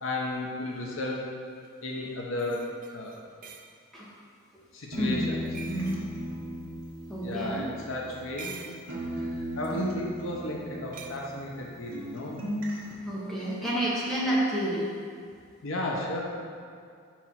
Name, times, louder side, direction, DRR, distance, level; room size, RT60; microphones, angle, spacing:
voice 1, 0.0-1.3 1.8-2.7 2.9-3.2 4.7-5.4 7.2-8.6 9.1-9.2 9.6-12.4 15.6-16.2, left 2 dB, 75° left, -2 dB, 0.9 m, -34 dB
sound 1, 1.6-1.7 2.4-3.7 5.5-6.0 8.1-8.9 9.6-9.8 10.9-11.1, right 5 dB, 40° right, 0.3 m, -45 dB
sound 2, 4.9-8.6 8.9-11.7 11.9-12.9, equal, 70° right, 1.1 m, -35 dB
voice 2, 7.1-7.6 13.0-14.9, right 1 dB, ahead, -7 dB, 1.1 m, -29 dB
4.6 x 4.4 x 5.7 m, 2.3 s
head